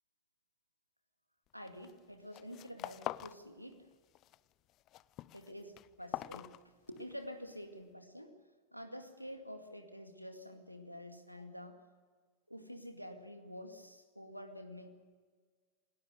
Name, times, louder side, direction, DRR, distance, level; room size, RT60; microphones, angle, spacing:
voice 1, 1.5-3.8 5.3-8.4 8.7-11.8 12.5-14.9, equal, 90° right, 7 dB, 2.1 m, -48 dB
sound 1, 1.7-2.0 2.3-3.4 3.7-4.4 4.7-7.2, left 14 dB, 35° left, 0.6 m, -44 dB
27.5 x 19.0 x 6.7 m, 1.5 s
figure-of-eight pair, 90°, 0 cm